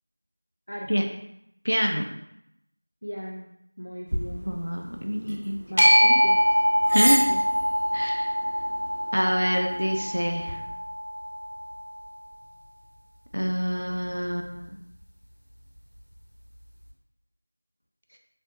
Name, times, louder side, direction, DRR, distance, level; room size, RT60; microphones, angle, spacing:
voice 1, 1.6-2.1 4.4-5.6 6.9-7.2 7.9-8.3 9.1-10.6 13.3-14.8, equal, 75° right, 2 dB, 0.5 m, -26 dB
voice 2, 3.0-3.5 3.8-4.5 5.7-6.6 6.9-7.4, equal, 65° left, -1 dB, 0.4 m, -37 dB
sound 1, 4.1-10.6, equal, 30° right, 0.8 m, -33 dB
sound 2, 5.8-12.0, equal, 85° left, 1.0 m, -24 dB
4.1 x 2.3 x 2.8 m, 0.80 s
figure-of-eight pair, 180°, 0 cm